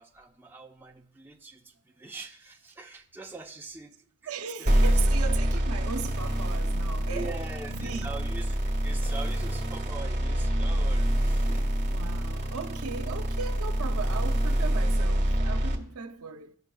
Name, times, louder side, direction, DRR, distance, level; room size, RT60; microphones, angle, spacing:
voice 1, 0.0-3.9 4.6-4.9 5.5-5.6 7.1-8.5 8.8-11.7, right 3 dB, 10° right, 0.7 m, -43 dB
voice 2, 4.2-7.4 7.7-8.1 11.9-16.6, right 6 dB, 75° right, 0.5 m, -37 dB
sound 1, 4.7-15.8, equal, 35° right, 1.4 m, -26 dB
16.0 x 5.9 x 2.3 m
head